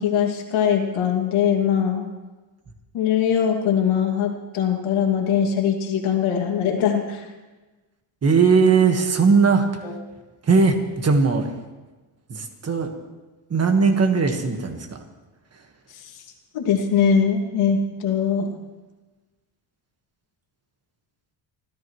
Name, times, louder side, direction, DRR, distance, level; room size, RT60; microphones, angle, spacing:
voice 1, 0.0-2.1 2.9-7.3 9.8-9.9 15.9-16.0 16.5-18.5, left 7 dB, 80° left, 2 dB, 2.5 m, -21 dB
voice 2, 8.2-9.9 10.4-11.5 12.3-12.9 13.5-15.0, right 5 dB, 30° right, 5 dB, 1.6 m, -19 dB
26.0 x 14.0 x 3.2 m, 1.2 s
cardioid pair, 150°, 48 cm